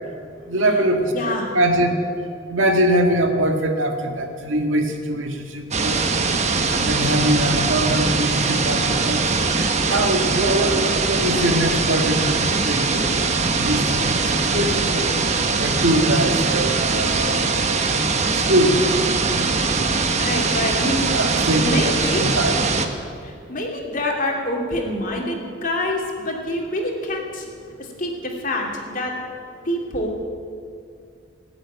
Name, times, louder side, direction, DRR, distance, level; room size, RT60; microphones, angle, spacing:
voice 1, 0.5-1.9 2.5-6.0 6.7-9.3 9.9-13.0 13.5-15.1 15.5-17.8 18.5-18.9 21.1-21.7 22.2-22.5, right 1 dB, 90° right, 4 dB, 1.8 m, -22 dB
voice 2, 1.1-1.6 20.2-21.0 21.6-22.3 23.2-27.5 28.0-29.1 29.6-30.1, left 1 dB, 45° left, 0 dB, 2.6 m, -26 dB
sound 1, 5.7-22.9, right 4 dB, 35° right, 1.1 m, -21 dB
18.0 x 8.0 x 9.2 m, 2.3 s
head